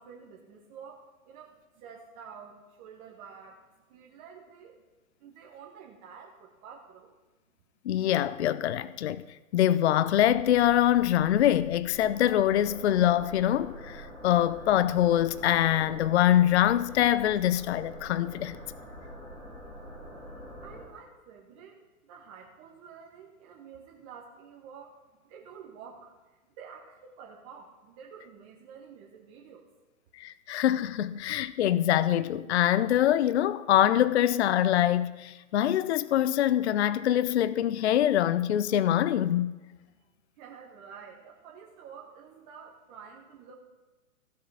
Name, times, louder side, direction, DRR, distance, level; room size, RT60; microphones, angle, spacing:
voice 1, 0.0-4.8 5.2-7.1 20.6-21.8 22.0-29.7 39.9-40.0 40.4-43.5, right 6 dB, 30° right, 1.3 m, -49 dB
voice 2, 7.9-9.2 9.5-18.6 30.2-39.5, left 12 dB, 50° left, 0.5 m, -24 dB
sound 1, 10.1-20.9, equal, 15° left, 3.5 m, -45 dB
15.0 x 6.8 x 5.0 m
figure-of-eight pair, 125°, 43 cm